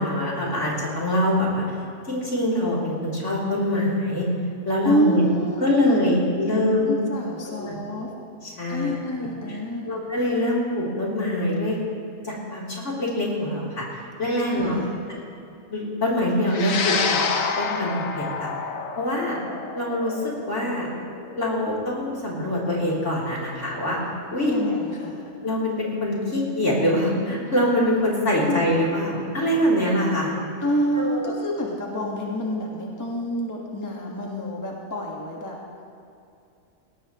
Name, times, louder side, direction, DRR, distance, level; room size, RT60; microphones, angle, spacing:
voice 1, 0.0-1.6 2.1-4.3 4.7-5.2 5.6-6.9 7.6-7.8 8.4-8.9 9.8-11.7 12.2-13.9 14.2-14.8 15.7-16.9 17.6-18.5 19.0-19.4 19.7-20.9 21.4-24.0 24.3-24.5 25.4-30.3 31.0-31.3, left 1 dB, 60° left, -5 dB, 3.7 m, -24 dB
voice 2, 4.8-6.0 6.8-8.1 8.7-9.9 14.5-14.9 24.4-25.3 28.4-28.6 30.6-35.6, equal, 15° left, -2 dB, 1.6 m, -27 dB
sound 1, 16.5-25.0, left 5 dB, 80° left, 1.4 m, -30 dB
20.0 x 17.5 x 3.1 m, 2.6 s
omnidirectional pair, 1.4 m